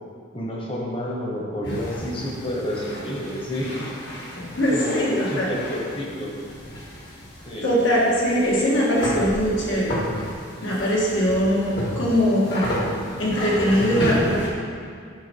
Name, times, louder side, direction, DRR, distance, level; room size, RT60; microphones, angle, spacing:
voice 1, 0.3-3.9 4.7-6.3 7.5-7.7, left 1 dB, 25° left, -3 dB, 1.2 m, -29 dB
sound 1, 1.6-14.5, equal, 55° left, 1.8 m, -32 dB
voice 2, 4.6-5.5 7.6-10.0 10.6-11.7 12.0-12.9 13.2-14.4, equal, 75° left, -5 dB, 2.0 m, -21 dB
8.1 x 5.8 x 4.6 m, 2.2 s
head